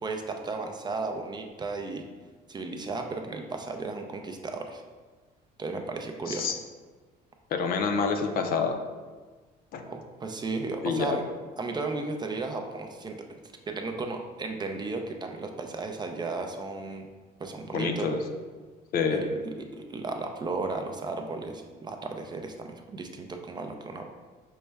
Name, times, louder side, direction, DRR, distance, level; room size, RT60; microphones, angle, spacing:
voice 1, 0.0-2.0 2.5-4.8 5.6-6.5 9.8-11.2 11.6-13.2 13.7-17.1 17.4-18.1 19.1-19.3 19.7-24.0, right 3 dB, 25° right, 4 dB, 0.4 m, -34 dB
voice 2, 6.3-6.6 7.5-8.8 9.7-9.9 10.8-11.2 17.7-18.2 18.9-19.2, left 5 dB, 60° left, 5 dB, 0.5 m, -27 dB
5.3 x 2.1 x 3.3 m, 1.4 s
cardioid pair, 110°, 17 cm